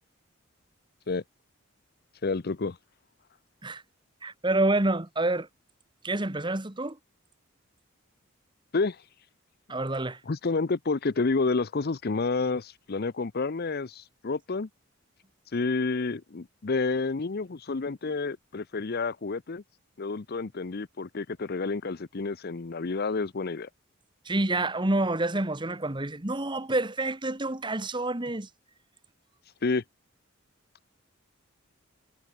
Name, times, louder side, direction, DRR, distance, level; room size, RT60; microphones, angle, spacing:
voice 1, 2.2-2.8 8.7-9.0 10.3-14.7 15.5-19.6 20.0-23.7 29.6-29.8, left 3 dB, 50° left, 0.6 m, -29 dB
voice 2, 4.2-5.5 6.0-7.0 9.7-10.2 24.2-28.5, right 2 dB, 25° right, 1.5 m, -28 dB
head